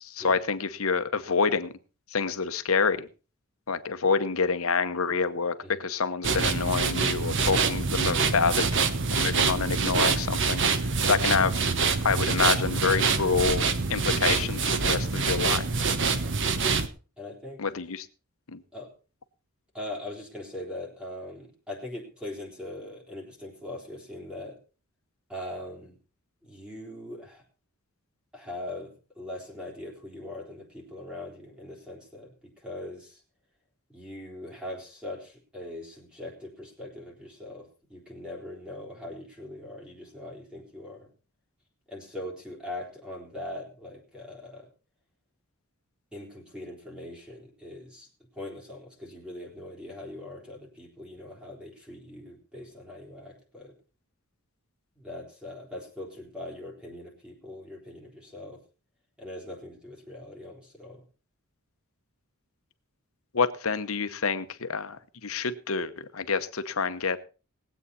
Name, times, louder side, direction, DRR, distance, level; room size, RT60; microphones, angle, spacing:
voice 1, 0.0-1.7 2.1-3.1 3.7-8.8 9.1-10.7 11.1-11.6 12.0-15.8 17.6-18.1 18.5-18.6 63.3-67.2, left 5 dB, 70° left, 11 dB, 1.0 m, -27 dB
sound 1, 6.2-16.9, right 4 dB, 60° right, 1.1 m, -25 dB
voice 2, 17.2-17.6 18.7-18.9 19.7-24.6 25.3-26.0 26.4-27.4 28.3-33.2 33.9-41.1 41.9-44.7 46.1-53.7 55.0-58.6 59.2-61.0, left 1 dB, 5° right, -1 dB, 3.7 m, -41 dB
20.0 x 8.3 x 4.2 m, 0.34 s
head